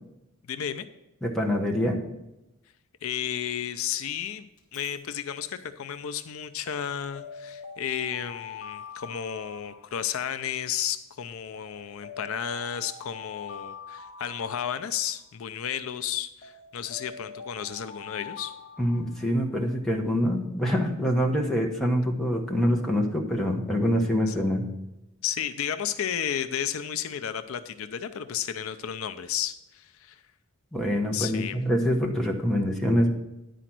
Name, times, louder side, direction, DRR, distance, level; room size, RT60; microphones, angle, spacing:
voice 1, 0.4-0.9 3.0-18.5 24.3-24.4 25.2-30.2 31.1-31.6, left 9 dB, 65° left, 11 dB, 0.4 m, -33 dB
voice 2, 1.2-2.0 18.8-24.7 30.7-33.1, equal, ahead, 0 dB, 1.0 m, -25 dB
Alarm, 4.6-4.9 6.7-10.4 11.5-15.3 16.4-19.6, left 5 dB, 40° left, 1.3 m, -44 dB
9.9 x 5.1 x 5.9 m, 0.92 s
head